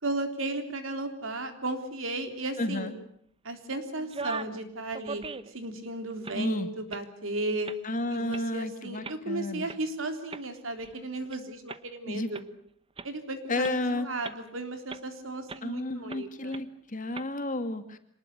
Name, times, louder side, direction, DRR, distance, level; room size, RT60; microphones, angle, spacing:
voice 1, 0.0-2.9 3.4-7.7 8.1-12.4 13.0-16.6, right 2 dB, 80° right, 7 dB, 3.6 m, -35 dB
voice 2, 2.6-2.9 6.4-6.7 7.8-9.7 12.1-12.3 13.5-14.1 15.6-18.0, left 1 dB, 40° left, 8 dB, 2.3 m, -31 dB
sound 1, 4.0-4.6 4.9-5.7 6.1-6.4 6.9-7.1 7.6-7.9 8.3-8.4 9.0-9.2 9.7-9.8 10.3-11.4 11.7-11.8 12.3-12.4 13.0-13.1 13.6-13.7 14.2-14.5 14.9-15.0 15.5-15.7 16.1-16.2 16.5-16.6 17.1-17.3, right 4 dB, 25° right, 1.0 m, -39 dB
26.0 x 19.5 x 8.2 m, 0.67 s
head